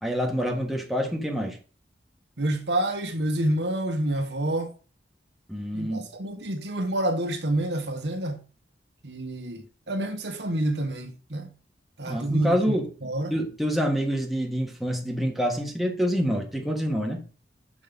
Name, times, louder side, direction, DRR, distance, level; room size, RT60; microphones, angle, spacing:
voice 1, 0.0-1.6 5.5-6.0 12.1-12.9 13.3-17.3, equal, ahead, 1.3 m, -27 dB
voice 2, 2.4-4.7 5.7-8.4 9.0-11.5 12.0-12.7 13.0-13.3, right 1 dB, 75° right, 1.4 m, -28 dB
6.3 x 5.5 x 5.3 m
head